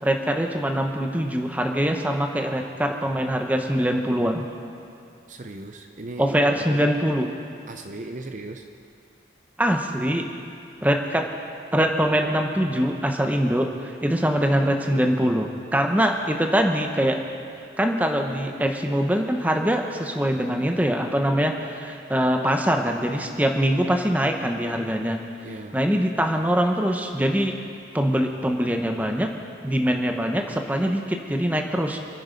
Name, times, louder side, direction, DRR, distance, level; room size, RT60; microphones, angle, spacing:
voice 1, 0.0-4.4 6.2-7.3 9.6-10.3 10.8-11.3 11.7-17.2 17.8-25.2 25.7-27.5 27.9-29.3 29.6-32.0, equal, 10° right, 3 dB, 1.0 m, -23 dB
voice 2, 5.3-7.0 7.7-8.7 25.4-25.8, right 2 dB, 45° right, 6 dB, 0.6 m, -37 dB
26.0 x 9.6 x 5.2 m, 2.5 s
head